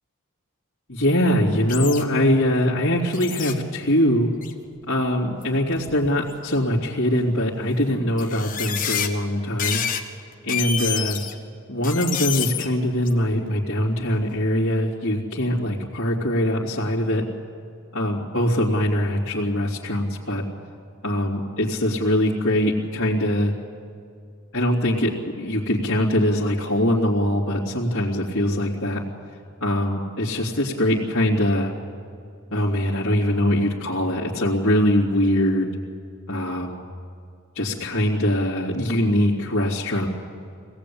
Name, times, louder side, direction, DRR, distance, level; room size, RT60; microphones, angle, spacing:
voice 1, 0.9-4.3 4.9-9.8 10.4-11.2 11.7-17.2 17.9-20.4 21.0-23.5 24.5-25.1 25.4-29.0 29.6-31.7 32.5-35.7 36.3-36.8 37.5-40.1, left 1 dB, 65° left, -8 dB, 3.0 m, -22 dB
sound 1, 1.7-2.0 3.1-3.5 4.4-4.7 5.4-5.5 5.8-6.6 7.5-7.6 8.2-9.1 9.6-10.0 10.3-11.3 11.8-12.7 13.0-13.1, left 8 dB, 40° left, 1.4 m, -28 dB
25.0 x 18.0 x 8.7 m, 2.4 s
head